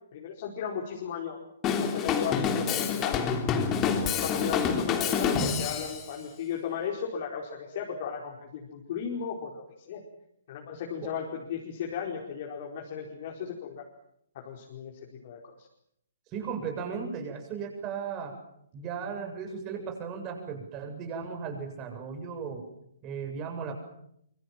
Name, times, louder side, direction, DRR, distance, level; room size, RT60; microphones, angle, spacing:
voice 1, 0.1-1.4 1.8-3.2 3.8-10.0 10.5-13.8 14.3-14.9 15.2-15.5, left 7 dB, 45° left, -1 dB, 4.8 m, -35 dB
Drum kit / Drum, 1.6-6.0, left 6 dB, 25° left, 3.5 m, -27 dB
voice 2, 16.3-18.3 18.7-22.6 23.0-23.7, right 6 dB, 30° right, 4 dB, 7.9 m, -36 dB
25.5 x 24.5 x 7.6 m, 0.75 s
figure-of-eight pair, 130°, 0 cm